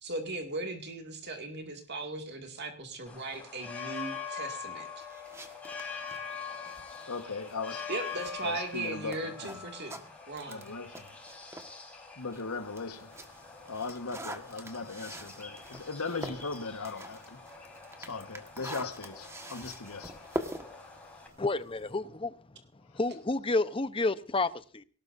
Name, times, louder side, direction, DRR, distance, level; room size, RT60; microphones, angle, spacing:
voice 1, 0.0-5.0 7.9-10.0 10.3-10.7, right 2 dB, 50° right, 2.3 m, -38 dB
sound 1, 3.1-21.3, left 6 dB, 5° left, 5.1 m, -44 dB
sound 2, 5.0-11.8 12.2-21.9, right 1 dB, 15° right, 1.5 m, -45 dB
voice 2, 7.1-7.8 8.4-9.8 10.5-11.1 12.2-13.1 13.7-17.2 18.0-20.1, left 4 dB, 85° left, 1.5 m, -38 dB
voice 3, 21.4-22.6 22.9-24.8, left 2 dB, 25° left, 0.9 m, -30 dB
18.5 x 18.0 x 2.7 m
head